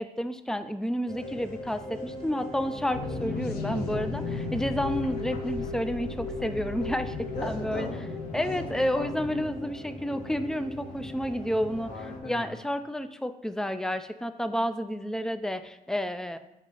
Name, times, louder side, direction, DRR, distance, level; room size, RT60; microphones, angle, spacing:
voice 1, 0.0-7.9 8.3-11.9 12.2-16.4, equal, 5° left, 11 dB, 0.4 m, -30 dB
sound 1, 1.1-12.2, left 2 dB, 50° left, 1.9 m, -39 dB
sound 2, 2.9-9.5, left 4 dB, 85° left, 0.7 m, -37 dB
voice 2, 7.3-9.1 11.8-12.6, left 2 dB, 65° left, -3 dB, 1.9 m, -38 dB
6.4 x 4.0 x 3.8 m, 0.94 s
cardioid pair, 80°, 16 cm